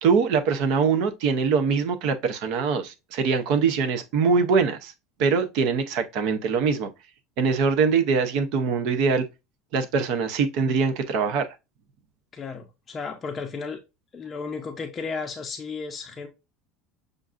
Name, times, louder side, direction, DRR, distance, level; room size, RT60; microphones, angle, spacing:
voice 1, 0.0-4.9 5.2-6.9 7.4-9.2 9.7-11.5, right 5 dB, 60° right, 0.6 m, -23 dB
voice 2, 12.3-13.8 14.1-16.3, left 4 dB, 20° left, 0.5 m, -34 dB
6.5 x 2.5 x 2.4 m
cardioid pair, 155°, 0 cm